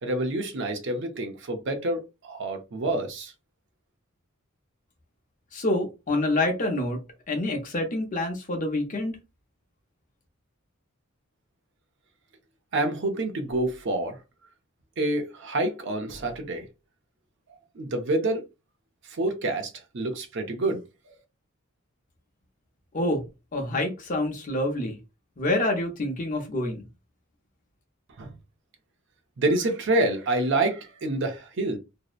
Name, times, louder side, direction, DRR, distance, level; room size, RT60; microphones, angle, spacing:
voice 1, 0.0-3.3 12.7-14.2 15.0-16.7 17.8-18.4 19.1-20.8 28.2-28.3 29.4-31.8, right 2 dB, 60° right, 0.6 m, -27 dB
voice 2, 5.5-7.0 7.3-9.2 22.9-23.2 23.5-25.0 25.4-26.8, left 1 dB, 40° left, 0.6 m, -27 dB
2.6 x 2.0 x 2.4 m
head